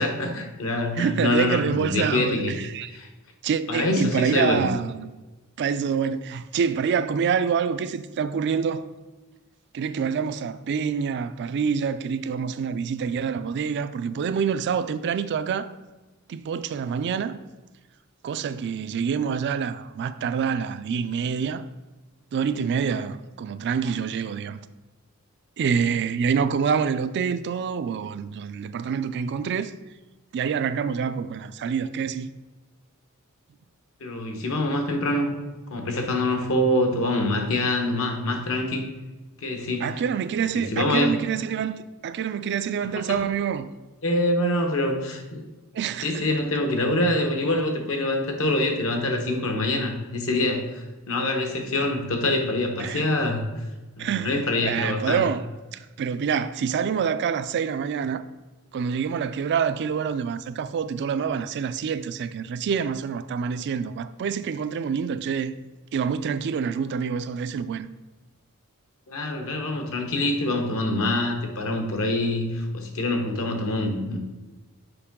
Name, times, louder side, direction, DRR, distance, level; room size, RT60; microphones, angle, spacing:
voice 1, 0.0-2.5 2.9-3.1 3.7-4.7 34.0-35.3 35.7-38.8 39.4-40.0 40.6-41.1 43.1-43.3 44.0-45.4 46.0-53.4 54.0-55.2 69.1-74.2, left 1 dB, 65° left, 1.1 m, -25 dB
voice 2, 1.0-2.9 3.4-5.1 5.6-8.9 9.7-15.7 16.3-17.4 18.2-21.7 22.3-24.6 25.6-29.7 30.3-32.3 39.8-43.7 45.7-46.2 52.8-53.1 54.0-55.4 55.7-58.2 58.7-65.5 65.9-67.9, right 6 dB, 50° right, 0.3 m, -26 dB
6.8 x 4.6 x 3.6 m
head